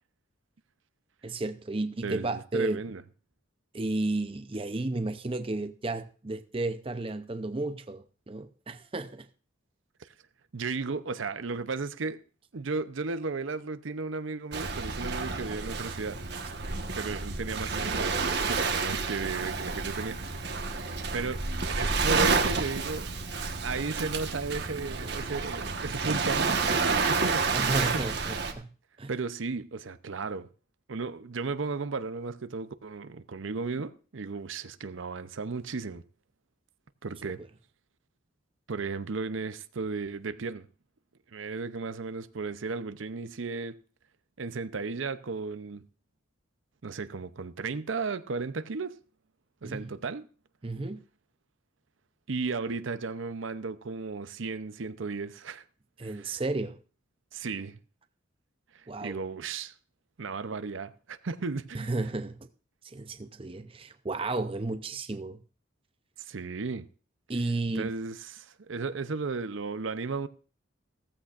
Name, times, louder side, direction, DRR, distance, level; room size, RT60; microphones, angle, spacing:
voice 1, 1.2-2.8 3.7-9.3 27.5-29.1 49.6-49.9 50.6-51.0 56.0-56.8 58.9-59.2 61.7-62.5 62.8-65.4 67.3-67.9, right 2 dB, 25° right, 0.6 m, -33 dB
voice 2, 2.0-3.0 10.5-12.2 12.5-16.2 16.8-20.6 21.1-21.5 21.7-23.1 23.6-27.8 29.1-30.5 30.9-36.0 37.0-37.4 38.7-40.7 41.3-43.8 44.4-45.8 46.8-49.0 49.6-50.3 52.3-55.6 56.0-56.4 57.3-57.8 58.7-59.7 60.2-61.9 66.2-66.9 67.7-70.3, right 4 dB, 75° right, 0.7 m, -35 dB
Waves surf, 14.5-28.5, right 4 dB, 55° right, 1.3 m, -30 dB
16.0 x 14.5 x 2.5 m
head